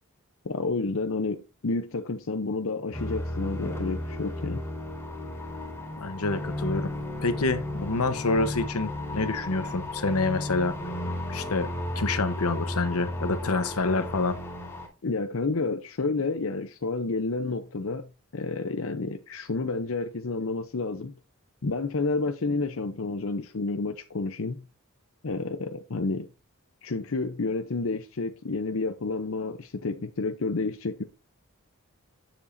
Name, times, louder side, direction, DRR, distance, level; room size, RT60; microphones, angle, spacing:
voice 1, 0.4-4.6 15.0-21.1 21.6-24.7 25.2-26.3 26.8-31.0, left 3 dB, 65° left, 0.7 m, -30 dB
sound 1, 2.9-14.9, left 1 dB, 10° left, 2.7 m, -34 dB
voice 2, 6.0-6.9 7.2-10.7 11.3-11.7 12.0-14.4, left 3 dB, 85° left, 1.0 m, -27 dB
10.0 x 7.2 x 2.6 m
head